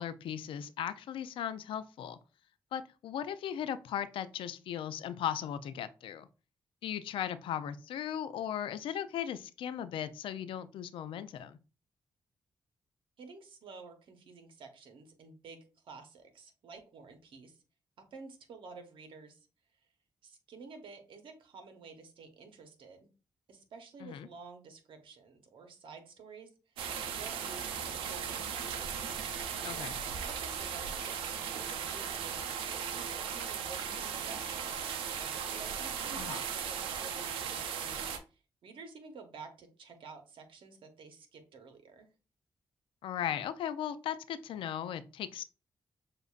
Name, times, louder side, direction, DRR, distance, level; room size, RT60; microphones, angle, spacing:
voice 1, 0.0-2.2 2.7-6.3 6.8-11.6 24.0-24.3 29.6-30.0 36.2-36.4 43.0-45.4, left 9 dB, 80° left, 13 dB, 0.4 m, -37 dB
voice 2, 13.2-17.6 18.0-19.4 20.2-23.1 23.5-26.5 27.0-28.9 29.7-29.9 30.2-34.5 35.5-38.1 38.6-42.1, right 4 dB, 75° right, 5 dB, 1.0 m, -51 dB
sound 1, 26.8-38.2, right 7 dB, 90° right, 0.5 m, -37 dB
6.7 x 2.5 x 2.4 m, 0.33 s
supercardioid pair, 50°, 9 cm